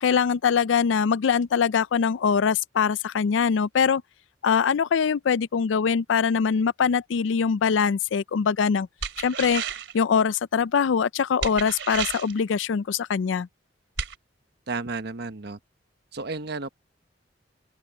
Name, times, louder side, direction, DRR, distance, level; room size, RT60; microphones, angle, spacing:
voice 1, 0.0-4.0 4.4-8.9 9.2-9.6 9.9-13.5, left 6 dB, 80° left, 0.4 m, -23 dB
sound 1, 9.0-10.0 11.4-12.4 14.0-14.1, right 7 dB, 80° right, 2.8 m, -31 dB
voice 2, 14.7-15.6 16.1-16.7, right 3 dB, 60° right, 1.1 m, -32 dB
open air
head